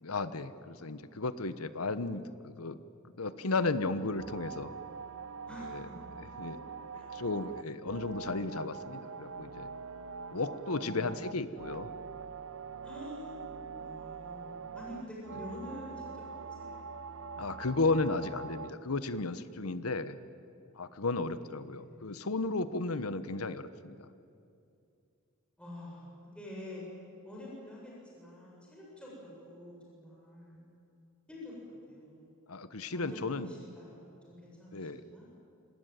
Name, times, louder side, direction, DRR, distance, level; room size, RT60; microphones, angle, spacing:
voice 1, 0.0-2.8 3.1-4.7 5.6-5.8 6.2-6.6 6.9-9.7 10.3-11.9 17.4-20.2 20.8-24.1 32.5-33.5 34.7-35.0, left 3 dB, 90° left, 13 dB, 1.1 m, -34 dB
sound 1, 4.2-18.7, right 5 dB, 65° right, 0.8 m, -44 dB
voice 2, 5.5-6.1 6.9-7.1 10.7-11.3 12.8-16.8 21.1-22.1 25.6-26.1 26.3-26.8 27.2-30.7 31.3-31.5 31.9-32.3 32.9-35.2, left 1 dB, 5° left, -5 dB, 7.3 m, -47 dB
26.0 x 19.5 x 9.3 m, 2.6 s
head